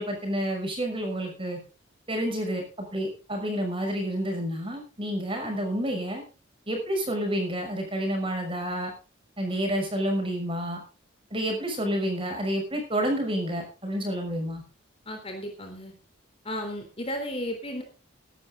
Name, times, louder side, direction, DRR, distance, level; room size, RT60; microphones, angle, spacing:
voice 1, 0.0-1.6 2.1-6.2 6.7-8.9 9.4-10.8 11.3-14.6, equal, 25° right, 3 dB, 6.1 m, -29 dB
voice 2, 15.1-15.9 16.5-17.8, equal, 30° left, 4 dB, 3.5 m, -34 dB
16.0 x 12.0 x 3.9 m, 0.32 s
head